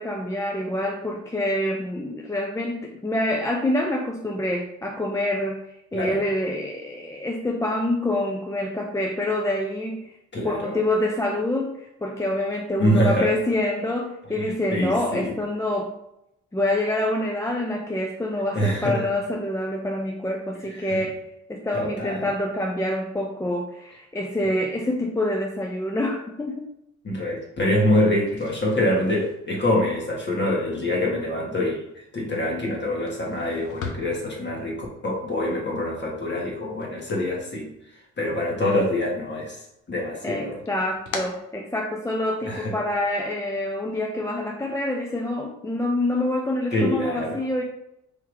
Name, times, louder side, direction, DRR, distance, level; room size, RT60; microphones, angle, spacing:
voice 1, 0.0-5.7 5.9-10.1 10.4-16.0 16.5-21.2 21.5-26.6 40.2-47.6, left 1 dB, 10° left, 1 dB, 0.5 m, -26 dB
voice 2, 10.3-10.7 12.8-13.3 14.4-15.3 18.5-19.0 20.9-21.0 21.7-22.3 27.0-31.8 32.1-34.8 35.0-37.6 38.2-39.6 39.9-40.6 42.4-42.7 46.7-47.4, left 1 dB, 35° left, -2 dB, 1.6 m, -25 dB
sound 1, 28.1-38.1 38.5-39.3 39.7-42.3, left 4 dB, 70° left, 0.9 m, -42 dB
3.5 x 2.8 x 4.7 m, 0.82 s
cardioid pair, 90°, 30 cm